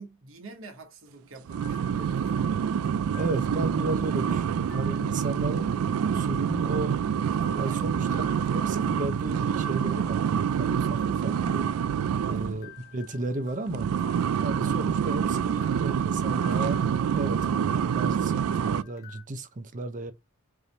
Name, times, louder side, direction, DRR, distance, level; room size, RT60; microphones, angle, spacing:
voice 1, 0.0-2.6 4.3-4.5 7.6-7.9 12.2-12.5, right 2 dB, 65° right, 1.1 m, -46 dB
sound 1, 1.5-5.7 6.0-6.1 6.6-6.7 7.3-9.3 9.6-10.7 11.0-15.2 15.6-18.2 18.5-19.2, left 5 dB, 45° left, 1.2 m, -52 dB
sound 2, 1.5-12.6 13.7-18.8, right 8 dB, 85° right, 0.3 m, -27 dB
voice 2, 3.1-7.0 7.5-8.1 8.5-11.7 12.3-13.9 14.4-16.8 17.1-20.1, right 2 dB, 35° right, 0.6 m, -34 dB
4.8 x 2.6 x 2.9 m
head